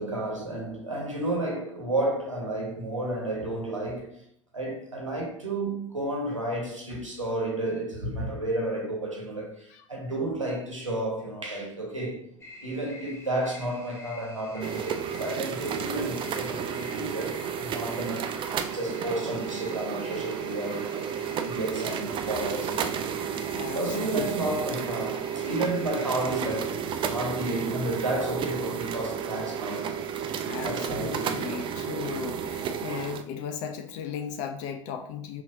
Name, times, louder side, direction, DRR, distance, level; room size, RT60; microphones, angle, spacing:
voice 1, 0.0-4.2 4.5-21.2 21.4-23.2 23.7-30.0 30.6-31.8, right 1 dB, 90° right, 1.2 m, -32 dB
sound 1, 12.4-26.4, left 2 dB, 15° left, 1.1 m, -48 dB
sound 2, 14.6-33.2, right 8 dB, 30° right, 0.5 m, -32 dB
voice 2, 23.5-24.7 30.4-35.4, left 7 dB, 50° left, 0.5 m, -37 dB
5.6 x 2.9 x 2.6 m
figure-of-eight pair, 75°, 16 cm